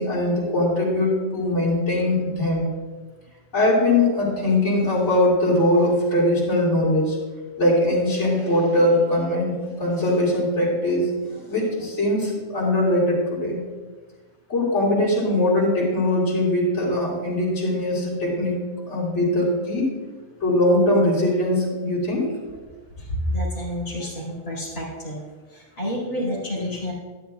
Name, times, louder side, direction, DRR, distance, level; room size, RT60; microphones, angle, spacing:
voice 1, 0.0-2.7 3.5-7.2 7.6-11.1 11.5-13.6 14.5-18.6 18.9-19.9 20.4-22.3, left 1 dB, 60° left, -5 dB, 2.7 m, -21 dB
voice 2, 23.3-25.2 25.8-26.9, left 1 dB, 75° left, -7 dB, 2.6 m, -28 dB
12.0 x 9.7 x 2.3 m, 1.3 s
omnidirectional pair, 1.4 m